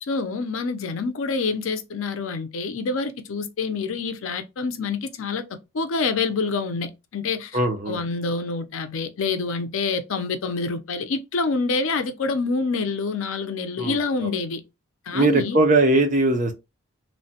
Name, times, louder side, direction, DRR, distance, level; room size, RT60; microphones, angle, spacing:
voice 1, 0.0-5.4 5.7-7.6 7.9-14.6 15.1-15.6, left 4 dB, 80° left, 0.5 m, -27 dB
voice 2, 7.5-8.0 13.8-14.0 14.2-14.3 15.1-16.5, right 2 dB, 35° right, 0.5 m, -20 dB
3.1 x 2.1 x 2.7 m
head